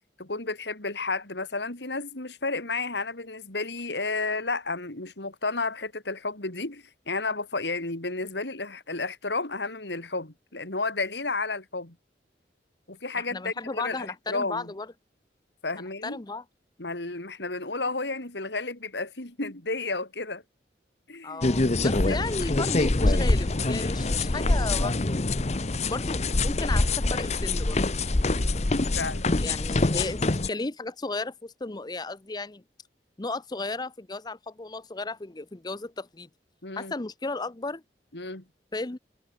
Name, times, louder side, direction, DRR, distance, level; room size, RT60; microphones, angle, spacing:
voice 1, 0.2-12.0 12.9-14.7 15.6-16.2 16.8-20.4 21.1-21.4 21.9-22.2 29.0-29.3 36.6-36.9 38.1-38.4, left 3 dB, 80° left, 3.5 m, -32 dB
voice 2, 13.2-14.9 16.0-16.4 21.2-27.8 29.4-32.6 33.2-36.3 36.8-37.8 38.7-39.0, left 3 dB, 25° left, 0.7 m, -34 dB
sound 1, 21.4-30.5, left 2 dB, 40° left, 0.9 m, -25 dB
head